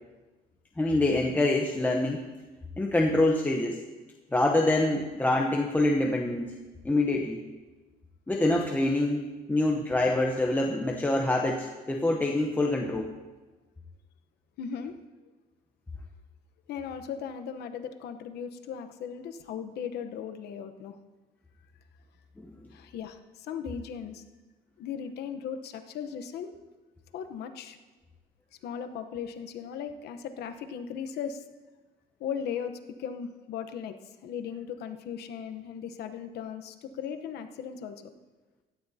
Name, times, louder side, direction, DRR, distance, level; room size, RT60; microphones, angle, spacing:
voice 1, 0.8-2.3 2.8-3.8 4.3-6.5 6.8-7.4 8.3-13.1 22.4-22.6, left 2 dB, 10° left, 1 dB, 0.9 m, -26 dB
voice 2, 14.6-14.9 16.7-21.0 22.7-24.2 24.8-26.5 27.1-27.8 28.6-31.4 32.2-34.0 34.2-38.0, left 7 dB, 75° left, 8 dB, 1.0 m, -37 dB
16.5 x 12.0 x 2.8 m, 1.2 s
cardioid pair, 110°, 17 cm